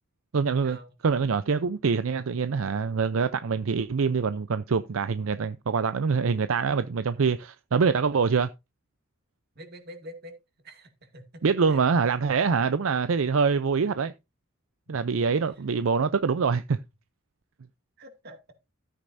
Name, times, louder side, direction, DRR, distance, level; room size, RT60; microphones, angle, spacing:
voice 1, 0.3-0.8 1.0-8.5 11.4-14.1 14.9-16.8, right 5 dB, 75° right, 0.5 m, -25 dB
voice 2, 9.6-10.4 10.6-11.8 14.9-15.3 18.0-18.4, equal, 50° right, 2.2 m, -46 dB
13.5 x 8.8 x 2.6 m
head